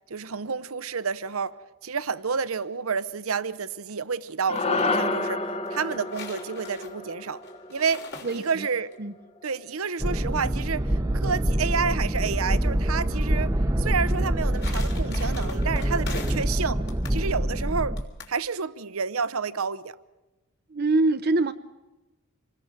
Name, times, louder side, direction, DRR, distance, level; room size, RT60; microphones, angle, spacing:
voice 1, 0.1-1.6 1.8-5.4 5.7-7.4 7.7-8.0 8.3-8.9 9.4-13.5 13.8-16.8 17.1-18.0 18.3-20.0, right 5 dB, 75° right, 0.8 m, -29 dB
sound 1, 4.3-4.9 5.6-8.9 14.1-16.6 16.9-17.2 18.0-18.4, left 4 dB, 50° left, 3.5 m, -42 dB
sound 2, 4.5-8.9, left 2 dB, 25° left, 1.1 m, -30 dB
voice 2, 8.2-8.7 9.0-9.1 20.7-21.5, right 2 dB, 45° right, 0.7 m, -24 dB
sound 3, 10.0-18.0, right 1 dB, 15° right, 0.9 m, -25 dB
26.5 x 20.0 x 6.7 m
head